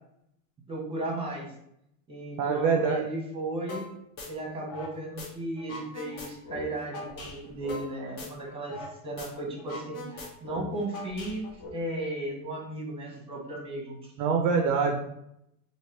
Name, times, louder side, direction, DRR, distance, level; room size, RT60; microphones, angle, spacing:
voice 1, 0.7-1.5 2.1-3.9 4.3-8.7 9.0-11.4 11.7-14.1, right 2 dB, 10° right, 0 dB, 0.9 m, -35 dB
voice 2, 2.4-3.0 14.2-15.0, right 5 dB, 40° right, 3 dB, 0.4 m, -24 dB
sound 1, 3.7-3.9 4.2-5.3 5.6-8.9 9.2-9.3 9.6-11.7, left 2 dB, 45° left, 1.1 m, -40 dB
3.1 x 2.7 x 3.0 m, 0.77 s
supercardioid pair, 125°, 47 cm